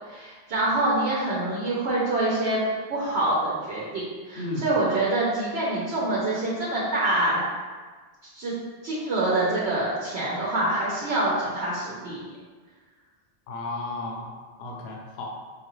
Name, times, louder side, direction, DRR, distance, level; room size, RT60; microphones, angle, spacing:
voice 1, 0.1-2.6 2.9-7.4 8.3-8.5 8.8-12.2, right 2 dB, 85° right, -7 dB, 1.1 m, -26 dB
voice 2, 13.5-14.3 14.6-15.4, left 2 dB, 75° left, 0 dB, 0.8 m, -33 dB
4.6 x 2.4 x 3.0 m, 1.4 s
omnidirectional pair, 1.1 m